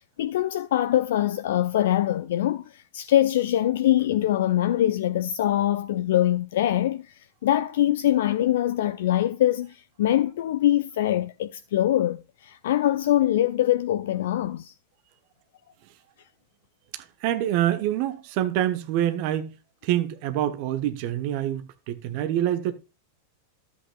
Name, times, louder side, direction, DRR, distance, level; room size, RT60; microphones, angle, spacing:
voice 1, 0.0-14.7, left 12 dB, 55° left, 0.4 m, -23 dB
voice 2, 16.9-19.5 19.8-22.7, right 12 dB, 45° right, 1.0 m, -26 dB
13.0 x 8.4 x 2.3 m
figure-of-eight pair, 90°, 0 cm